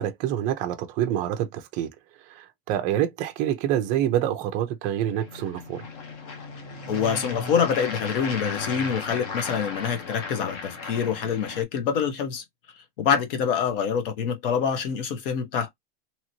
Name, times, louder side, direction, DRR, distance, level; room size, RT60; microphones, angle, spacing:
voice 1, 0.0-1.9 2.3-5.8, right 11 dB, 25° right, 0.4 m, -26 dB
sound 1, 5.1-11.6, left 4 dB, 40° left, 0.7 m, -35 dB
voice 2, 6.9-12.4 13.0-15.7, left 7 dB, 60° left, 1.0 m, -26 dB
2.9 x 2.9 x 2.7 m
supercardioid pair, 180°, 31 cm